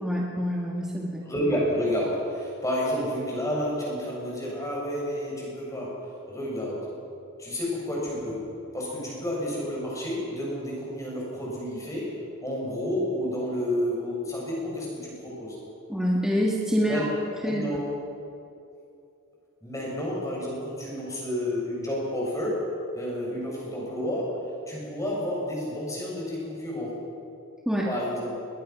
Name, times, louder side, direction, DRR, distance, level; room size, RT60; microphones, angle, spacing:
voice 1, 0.0-1.3 15.9-17.0 17.4-17.6 27.7-27.9, equal, 5° right, -3 dB, 1.8 m, -26 dB
voice 2, 1.2-6.0 6.3-6.9 7.4-8.5 8.7-12.1 12.4-15.6 16.9-17.0 17.4-17.9 19.6-24.4 24.7-27.0 27.9-28.4, equal, 15° left, -4 dB, 7.1 m, -30 dB
21.5 x 21.0 x 6.1 m, 2.7 s
head